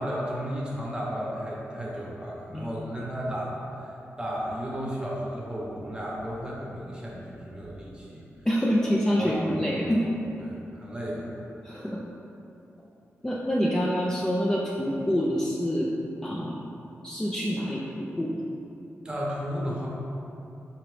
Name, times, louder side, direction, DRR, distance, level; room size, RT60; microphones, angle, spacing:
voice 1, 0.0-3.9 4.2-8.2 9.2-10.0 10.4-11.3 11.6-11.9 19.0-19.9, equal, 20° right, -5 dB, 0.9 m, -34 dB
voice 2, 8.5-10.0 11.6-12.0 13.2-15.9 16.2-16.6 17.0-18.4, equal, 10° left, -5 dB, 0.4 m, -26 dB
4.9 x 2.9 x 3.2 m, 2.8 s
wide cardioid pair, 105°, 5 cm